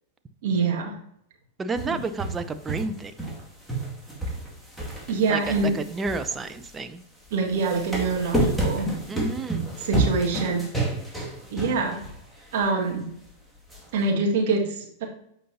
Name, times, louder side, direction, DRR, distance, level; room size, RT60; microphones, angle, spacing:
voice 1, 0.4-1.0 5.1-5.8 7.3-8.9 9.8-10.6 11.5-12.0 12.5-13.1 13.9-15.0, right 4 dB, 65° right, 0 dB, 1.8 m, -25 dB
voice 2, 1.6-3.1 5.3-7.0 9.1-9.6, right 3 dB, 20° right, 9 dB, 0.6 m, -30 dB
sound 1, 1.8-3.4 3.7-6.8 7.5-12.2 12.5-12.6 13.7-13.8, right 2 dB, ahead, 2.1 m, -29 dB
7.7 x 5.4 x 2.7 m, 0.74 s
hypercardioid pair, 100°, 0 cm